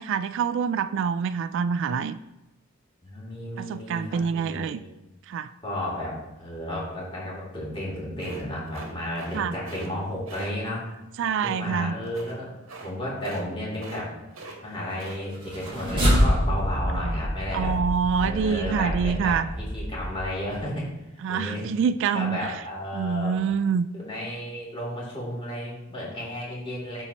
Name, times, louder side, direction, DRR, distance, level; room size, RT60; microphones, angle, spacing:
voice 1, 0.0-2.2 3.6-4.8 5.3-5.5 9.3-9.5 11.2-12.0 16.9-17.2 17.5-19.5 21.2-22.6 22.9-23.9, right 6 dB, 60° right, 14 dB, 0.3 m, -26 dB
voice 2, 3.0-4.9 5.6-10.9 11.4-12.5 12.8-14.1 14.6-17.8 18.2-21.7 22.1-23.4 23.9-27.0, left 1 dB, 25° left, -6 dB, 2.8 m, -33 dB
sound 1, 8.2-9.4 9.6-9.9 10.3-10.5 12.0-12.4 12.7-12.9 13.2-13.5 13.7-14.0 14.3-15.2 15.5-15.9, right 3 dB, 80° right, 1.4 m, -42 dB
sound 2, 15.3-20.7, equal, 25° right, 1.7 m, -26 dB
13.0 x 4.4 x 2.9 m, 0.97 s
head